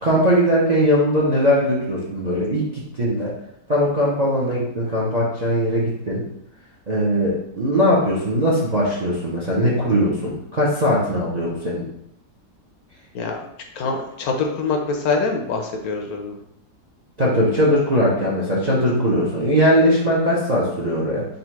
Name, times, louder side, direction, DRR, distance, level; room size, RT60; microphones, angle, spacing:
voice 1, 0.0-3.3 3.7-6.2 6.9-11.9 17.2-21.2, equal, 45° right, -5 dB, 0.5 m, -20 dB
voice 2, 13.8-16.4, left 4 dB, 70° left, 3 dB, 1.0 m, -24 dB
3.9 x 2.4 x 4.4 m, 0.76 s
omnidirectional pair, 1.8 m